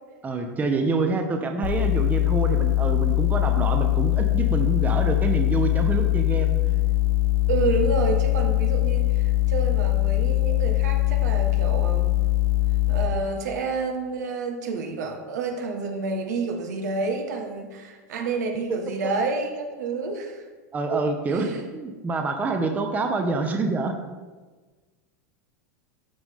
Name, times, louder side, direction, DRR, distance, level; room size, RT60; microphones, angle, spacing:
voice 1, 0.2-6.5 18.7-19.1 20.7-24.0, right 3 dB, 20° right, 4 dB, 0.9 m, -26 dB
sound 1, 1.6-13.1, left 16 dB, 60° left, 0.8 m, -22 dB
voice 2, 7.5-12.1 12.9-20.4 20.9-21.0 21.3-21.6, right 4 dB, 80° right, 3 dB, 1.5 m, -29 dB
13.0 x 4.8 x 3.7 m, 1.3 s
supercardioid pair, 130°, 9 cm